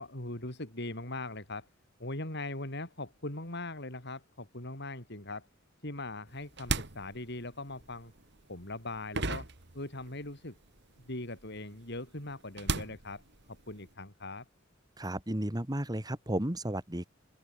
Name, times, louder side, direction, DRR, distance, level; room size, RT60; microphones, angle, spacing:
voice 1, 0.0-1.7 2.0-5.5 5.8-8.1 8.5-9.5 9.7-10.5 11.1-13.2 13.5-14.5, left 2 dB, 55° left, 5.9 m, -40 dB
sound 1, 6.3-10.4 10.6-13.9, right 3 dB, 60° right, 2.5 m, -38 dB
voice 2, 15.0-17.1, right 1 dB, 20° right, 2.2 m, -33 dB
open air
head